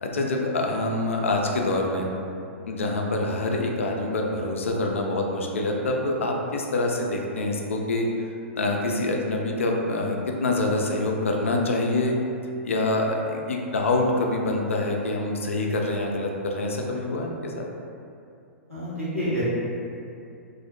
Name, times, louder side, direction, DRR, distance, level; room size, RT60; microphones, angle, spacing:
voice 1, 0.0-2.1 2.6-8.1 8.5-12.1 12.6-17.7, left 2 dB, 65° left, 0 dB, 0.3 m, -26 dB
voice 2, 18.7-19.4, equal, 90° right, -11 dB, 1.0 m, -28 dB
2.4 x 2.0 x 2.7 m, 2.5 s
figure-of-eight pair, 105°, 7 cm